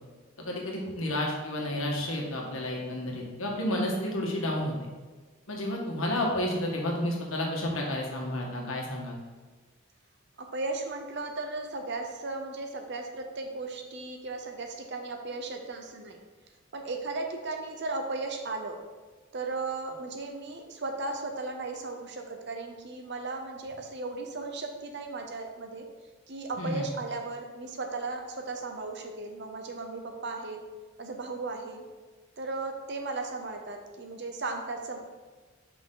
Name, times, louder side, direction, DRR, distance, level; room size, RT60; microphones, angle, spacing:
voice 1, 0.4-4.9 5.5-9.2 26.6-26.9, left 1 dB, 85° left, -1 dB, 1.6 m, -31 dB
voice 2, 10.4-16.2 16.7-18.8 19.3-25.8 26.3-30.6 31.0-31.8 32.4-35.0, right 3 dB, 55° right, 4 dB, 0.8 m, -36 dB
6.8 x 5.5 x 3.9 m, 1.4 s
head